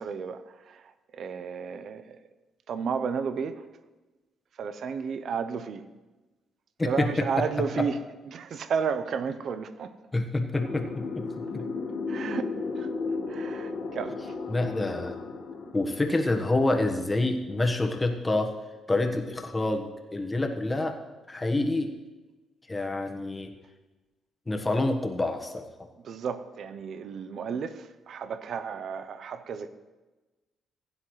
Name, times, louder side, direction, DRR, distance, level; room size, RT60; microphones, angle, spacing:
voice 1, 0.0-2.2 2.7-3.7 4.6-5.9 6.8-8.0 8.3-9.9 12.1-12.9 13.3-14.3 26.0-29.7, right 6 dB, 60° right, 0.7 m, -33 dB
voice 2, 10.1-11.6 14.5-15.2 15.7-18.5 18.9-21.0 21.3-21.9 22.7-23.5 24.5-25.7, left 2 dB, 15° left, 1.3 m, -27 dB
sound 1, 10.5-16.7, left 4 dB, 70° left, 1.7 m, -34 dB
16.0 x 9.9 x 3.2 m
cardioid pair, 90°, 0 cm